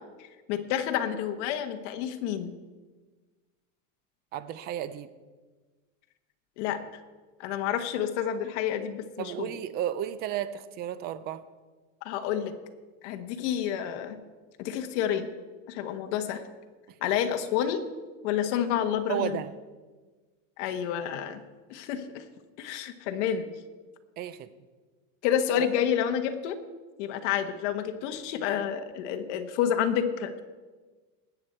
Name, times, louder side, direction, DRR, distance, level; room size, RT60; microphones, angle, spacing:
voice 1, 0.5-2.5 6.6-6.8 7.4-9.5 12.0-12.5 13.0-14.2 14.6-15.3 15.7-16.4 17.0-17.8 18.2-19.4 20.6-21.4 21.7-22.2 22.6-23.5 25.2-26.6 27.0-30.4, left 9 dB, 60° left, 8 dB, 1.3 m, -29 dB
voice 2, 4.3-5.1 9.2-11.4 19.1-19.5 24.2-24.5 25.6-25.7, right 11 dB, 25° right, 14 dB, 0.4 m, -33 dB
19.5 x 8.1 x 4.3 m, 1.3 s
supercardioid pair, 160°, 40 cm